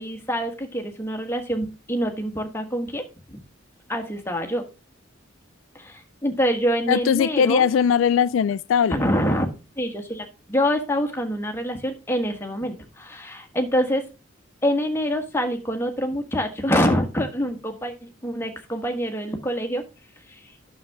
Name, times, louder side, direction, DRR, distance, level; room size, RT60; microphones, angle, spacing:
voice 1, 0.0-3.0 3.3-3.4 3.9-4.6 5.7-7.7 8.9-9.5 9.8-14.0 14.6-19.8 20.3-20.4, equal, 10° left, 1.5 m, -25 dB
voice 2, 6.9-9.0, left 7 dB, 75° left, 0.3 m, -20 dB
9.3 x 6.7 x 3.5 m
head